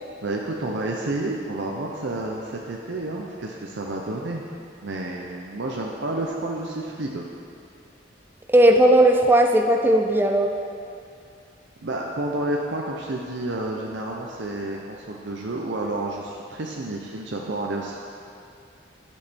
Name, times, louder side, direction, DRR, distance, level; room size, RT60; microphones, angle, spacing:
voice 1, 0.2-4.5 4.8-7.2 11.8-18.0, right 2 dB, 70° right, -1 dB, 0.7 m, -30 dB
voice 2, 8.5-10.5, right 1 dB, 10° right, 3 dB, 0.4 m, -16 dB
11.5 x 6.5 x 4.3 m, 2.5 s
head